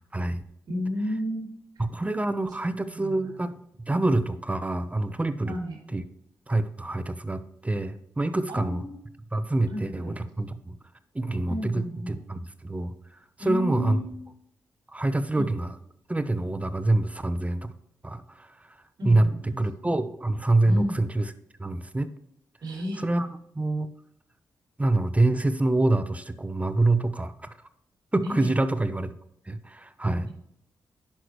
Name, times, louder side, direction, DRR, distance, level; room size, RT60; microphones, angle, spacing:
voice 1, 0.1-0.4 1.8-3.5 3.9-5.6 5.9-6.0 6.5-8.8 9.3-10.8 11.1-12.9 13.4-14.0 14.9-15.7 16.1-17.7 18.0-18.5 19.0-19.3 19.6-21.2 21.6-22.1 23.0-23.3 23.5-23.9 24.8-27.5 28.1-29.1 29.5-30.3, right 2 dB, 20° right, 12 dB, 0.8 m, -26 dB
voice 2, 0.7-1.5 2.7-3.3 5.4-5.8 8.5-9.0 9.7-10.2 11.5-12.2 13.4-14.1 15.3-15.5 19.0-19.6 20.6-21.0 22.6-23.0 28.2-28.5, left 1 dB, 65° right, -2 dB, 3.1 m, -32 dB
10.0 x 5.9 x 3.1 m, 0.77 s
supercardioid pair, 50°, 8 cm